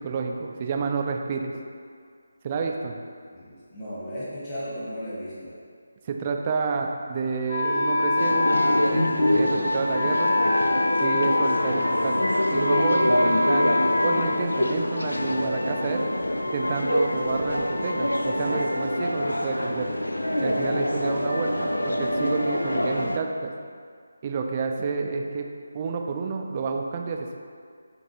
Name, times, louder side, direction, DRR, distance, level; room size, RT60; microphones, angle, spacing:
voice 1, 0.0-1.5 2.4-3.0 6.1-8.5 8.9-10.3 11.0-13.8 14.0-16.0 16.5-19.9 20.4-23.5 24.2-25.5 25.7-27.4, right 5 dB, 30° right, 2 dB, 0.3 m, -29 dB
voice 2, 3.3-5.6, equal, 20° left, -11 dB, 1.2 m, -35 dB
Wind instrument woodwind instrument, 7.5-15.2, left 2 dB, 50° left, 0.6 m, -26 dB
sound 1, 8.2-23.2, left 1 dB, 85° left, 0.3 m, -25 dB
6.1 x 2.5 x 2.9 m, 2.1 s
figure-of-eight pair, 155°, 0 cm